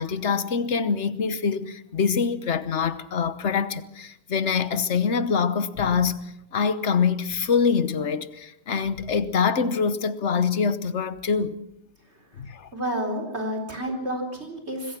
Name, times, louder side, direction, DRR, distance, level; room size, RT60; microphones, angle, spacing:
voice 1, 0.0-11.6 12.4-12.7, left 6 dB, 75° left, 1.4 m, -25 dB
voice 2, 12.7-15.0, equal, 70° right, 4.5 m, -30 dB
26.5 x 21.0 x 6.1 m
omnidirectional pair, 1.2 m